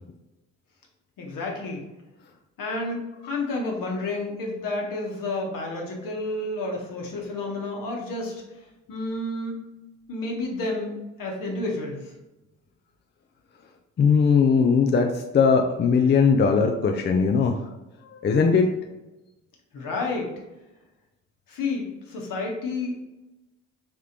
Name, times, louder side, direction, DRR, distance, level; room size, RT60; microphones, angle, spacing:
voice 1, 1.2-1.9 2.6-8.4 8.9-9.6 10.1-12.1 19.7-20.3 21.5-22.9, left 2 dB, 55° left, 0 dB, 1.2 m, -30 dB
voice 2, 14.0-15.1 15.3-17.6 18.2-18.7, left 5 dB, 30° left, 3 dB, 0.5 m, -19 dB
3.6 x 3.5 x 2.9 m, 1.0 s
hypercardioid pair, 40°, 39 cm